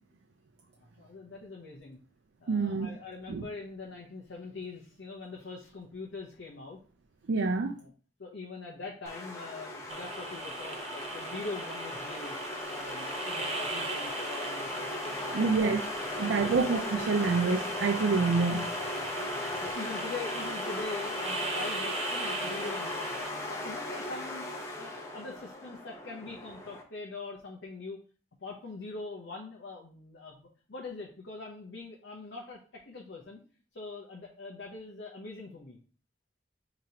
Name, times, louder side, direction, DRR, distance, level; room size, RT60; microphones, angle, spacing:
voice 1, 0.8-2.0 2.4-6.8 7.8-7.9 8.2-12.3 12.7-15.6 16.2-16.5 19.3-23.2 23.5-24.5 24.8-28.0 28.4-33.4 33.7-35.8, left 3 dB, 85° left, -2 dB, 0.8 m, -43 dB
voice 2, 2.5-2.9 3.3-3.4 7.3-7.8 15.3-15.8 16.2-18.7, right 4 dB, 80° right, 3 dB, 0.5 m, -27 dB
sound 1, 9.1-26.8, left 2 dB, 15° left, 0.7 m, -37 dB
sound 2, 9.9-23.3, right 3 dB, 35° right, 0.6 m, -39 dB
5.1 x 2.9 x 2.8 m, 0.41 s
head